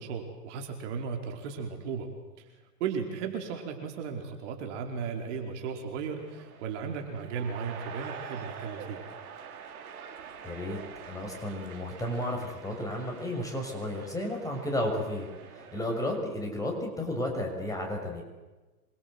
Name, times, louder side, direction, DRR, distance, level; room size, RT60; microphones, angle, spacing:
voice 1, 0.0-2.1 2.8-9.0, right 6 dB, 45° right, 3 dB, 4.8 m, -35 dB
sound 1, 6.2-16.2, right 7 dB, 65° right, 4.2 m, -46 dB
voice 2, 10.4-10.8 11.1-18.2, left 1 dB, 5° left, 1 dB, 6.1 m, -33 dB
27.5 x 24.0 x 8.0 m, 1.2 s
hypercardioid pair, 120°, 47 cm